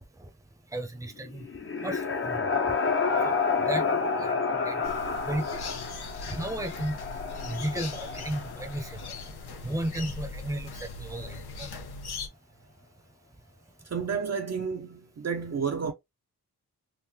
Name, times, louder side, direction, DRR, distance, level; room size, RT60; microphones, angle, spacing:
voice 1, 0.7-1.4 1.8-2.4 3.2-3.4 3.7-3.8 4.2-4.8 5.3-5.5 6.3-7.0 7.4-9.0 9.6-11.7, right 1 dB, 10° right, 0.8 m, -34 dB
sound 1, 1.2-9.1, left 4 dB, 35° left, 0.8 m, -30 dB
sound 2, 4.8-12.3, left 4 dB, 75° left, 0.9 m, -40 dB
voice 2, 13.8-15.9, right 6 dB, 40° right, 0.6 m, -31 dB
3.8 x 2.5 x 2.8 m
wide cardioid pair, 85°, 38 cm